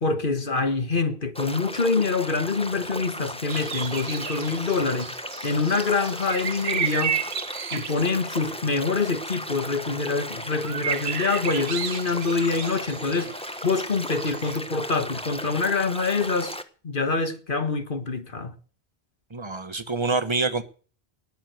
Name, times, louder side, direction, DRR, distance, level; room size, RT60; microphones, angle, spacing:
voice 1, 0.0-5.1 5.4-7.2 7.7-13.3 13.6-16.6 16.8-18.5, left 4 dB, 55° left, 1.7 m, -25 dB
sound 1, 1.3-16.6, left 1 dB, 5° left, 1.2 m, -36 dB
sound 2, 3.5-14.6, right 8 dB, 80° right, 1.2 m, -34 dB
voice 2, 19.3-20.6, right 3 dB, 25° right, 1.3 m, -26 dB
19.0 x 6.5 x 9.5 m
omnidirectional pair, 1.1 m